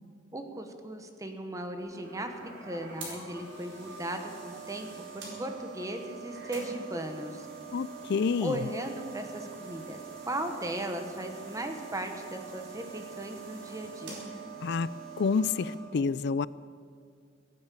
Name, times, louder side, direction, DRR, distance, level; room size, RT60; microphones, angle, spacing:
voice 1, 0.3-4.9 5.1-7.5 8.4-10.0 10.3-14.2, right 1 dB, 15° right, 6 dB, 1.1 m, -37 dB
sound 1, 1.8-15.7, right 5 dB, 75° right, 4.9 m, -44 dB
voice 2, 7.7-8.6 14.6-14.9 15.2-16.5, left 5 dB, 60° left, 19 dB, 0.4 m, -28 dB
17.0 x 9.7 x 8.3 m, 2.1 s
head